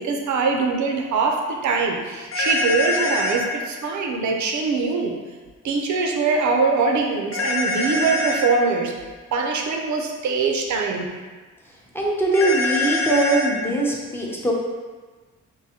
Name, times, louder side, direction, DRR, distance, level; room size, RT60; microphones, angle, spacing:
voice 1, 0.0-5.1 5.6-8.9 9.3-11.1, right 4 dB, 70° right, 2 dB, 0.6 m, -23 dB
sound 1, 2.3-3.4 7.3-8.5 12.3-13.5, left 2 dB, 45° left, 0.7 m, -24 dB
voice 2, 11.9-14.5, right 1 dB, 5° left, -3 dB, 0.6 m, -21 dB
3.8 x 2.6 x 2.8 m, 1.4 s
cardioid pair, 110°, 31 cm